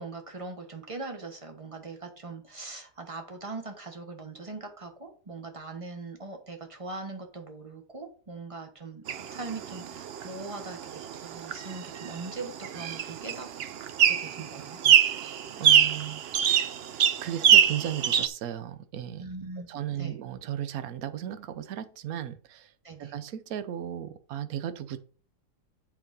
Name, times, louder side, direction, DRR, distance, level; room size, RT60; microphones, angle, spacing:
voice 1, 0.0-13.5 14.1-14.8 19.2-19.7 20.0-20.2 22.8-23.1, right 3 dB, 20° right, 1.2 m, -41 dB
sound 1, 9.1-18.3, right 9 dB, 85° right, 0.5 m, -25 dB
voice 2, 14.8-16.7 17.2-19.3 19.7-22.7 23.0-25.0, right 10 dB, 65° right, 1.2 m, -36 dB
7.9 x 4.7 x 5.3 m
omnidirectional pair, 1.7 m